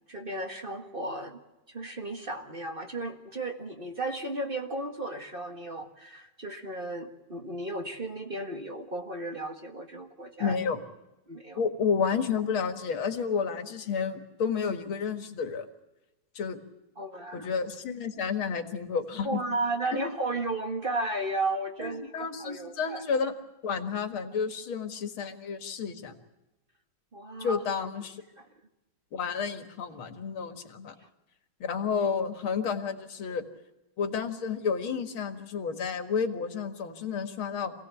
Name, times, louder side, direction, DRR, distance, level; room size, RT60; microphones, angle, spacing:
voice 1, 0.1-1.4 1.7-10.6 11.3-11.6 17.0-17.5 19.2-23.0 27.1-27.6, right 2 dB, 30° right, 4 dB, 1.8 m, -34 dB
voice 2, 10.4-10.8 11.6-15.7 16.4-16.6 17.3-19.3 19.9-20.0 21.8-23.3 23.6-26.1 27.4-28.2 29.1-30.9 31.6-33.4 34.0-37.7, left 6 dB, 85° left, 8 dB, 2.6 m, -31 dB
27.0 x 18.0 x 8.4 m, 1.0 s
omnidirectional pair, 2.2 m